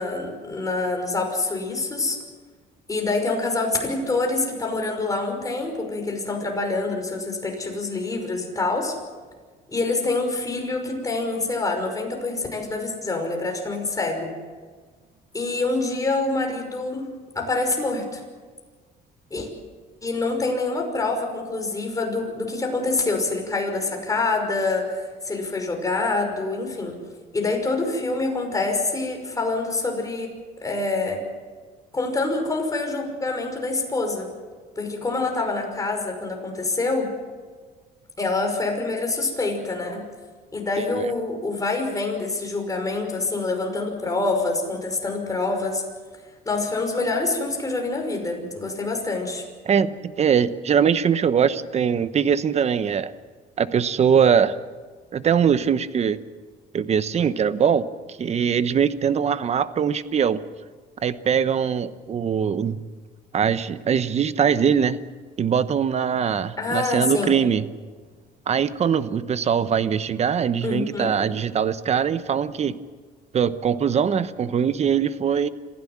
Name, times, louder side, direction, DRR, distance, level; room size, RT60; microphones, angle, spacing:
voice 1, 0.0-2.2 2.9-9.0 9.7-14.3 15.3-17.1 17.3-18.2 19.3-19.5 20.0-26.9 27.3-30.3 30.6-31.2 31.9-34.3 34.8-37.1 38.2-40.0 40.5-45.8 46.5-49.5 66.6-67.3 70.6-71.1, left 3 dB, 20° left, 2 dB, 5.7 m, -26 dB
voice 2, 40.8-41.1 49.6-53.1 53.6-54.6 55.1-56.2 56.7-57.9 58.2-60.4 61.0-62.8 63.3-65.0 65.4-67.6 68.5-72.8 73.3-75.5, right 7 dB, 40° right, 13 dB, 1.0 m, -22 dB
27.0 x 16.0 x 7.5 m, 1.5 s
cardioid pair, 110°, 17 cm